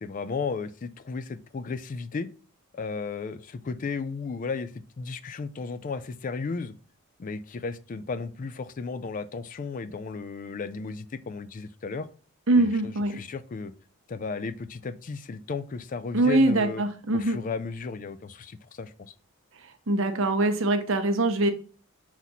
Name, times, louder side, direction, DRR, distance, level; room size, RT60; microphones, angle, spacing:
voice 1, 0.0-2.3 2.7-6.7 7.2-12.1 12.6-13.7 14.1-16.8 17.1-19.1, left 4 dB, 40° left, 12 dB, 0.4 m, -34 dB
voice 2, 12.5-13.1 16.1-17.4 19.9-21.5, right 2 dB, 65° right, 7 dB, 0.9 m, -23 dB
6.0 x 4.1 x 4.0 m, 0.39 s
head